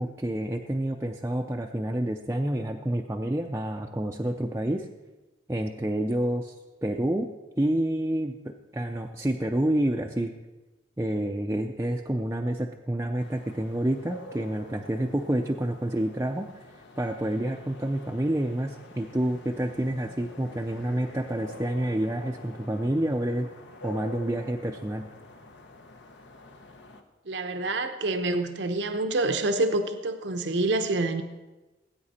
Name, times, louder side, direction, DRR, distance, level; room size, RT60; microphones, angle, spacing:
voice 1, 0.0-4.9 5.5-6.6 6.8-7.3 7.6-10.3 11.0-16.5 17.0-23.5 23.8-25.0, right 1 dB, 15° right, 1 dB, 0.5 m, -28 dB
sound 1, 13.2-27.0, left 1 dB, 70° left, 1.2 m, -47 dB
voice 2, 27.2-31.2, right 2 dB, 70° right, 8 dB, 0.8 m, -27 dB
18.5 x 8.9 x 4.3 m, 1.1 s
head